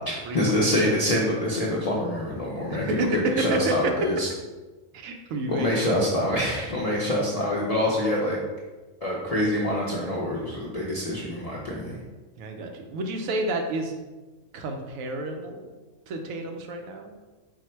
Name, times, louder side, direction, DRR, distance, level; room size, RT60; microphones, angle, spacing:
voice 1, 0.1-4.3 5.5-8.4 9.0-12.0, left 1 dB, 55° left, -5 dB, 0.4 m, -26 dB
voice 2, 2.7-3.9 4.9-6.1 12.4-13.9 14.5-15.6 16.1-17.1, right 2 dB, 90° right, 4 dB, 1.0 m, -29 dB
4.5 x 2.1 x 4.3 m, 1.2 s
omnidirectional pair, 1.4 m